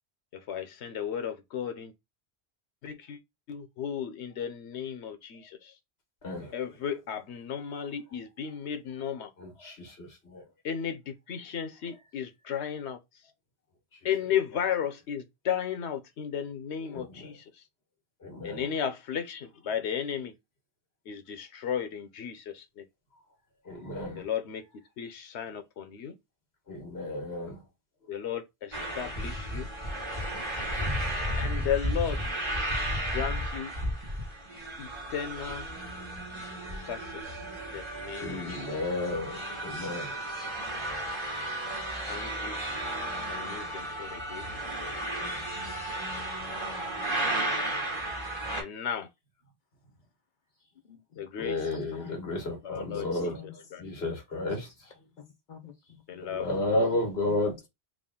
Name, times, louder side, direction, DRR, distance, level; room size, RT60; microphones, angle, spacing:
voice 1, 0.3-1.9 2.8-3.2 3.5-5.8 6.5-9.3 10.6-13.0 14.0-17.6 18.4-20.3 21.1-22.8 24.2-24.6 25.0-26.1 28.1-29.7 31.4-32.2 33.1-33.7 34.8-35.7 36.8-38.6 42.0-42.8 43.3-44.6 48.6-49.1 51.2-51.6 52.6-53.3 53.7-53.9 56.1-56.6, left 8 dB, 90° left, 1.0 m, -34 dB
voice 2, 6.2-6.5 9.4-10.4 16.9-17.3 18.2-18.7 23.6-24.2 26.7-27.6 28.0-28.1 30.3-31.3 33.0-33.4 38.2-40.1 51.4-53.4 53.8-54.9 56.3-57.6, left 2 dB, 65° left, 1.7 m, -33 dB
sound 1, 28.7-48.6, right 1 dB, 25° right, 1.2 m, -33 dB
voice 3, 50.8-51.2 51.6-52.4 52.9-53.5 55.2-56.4 57.3-57.7, left 9 dB, 50° left, 0.8 m, -49 dB
3.7 x 2.4 x 3.6 m
omnidirectional pair, 1.1 m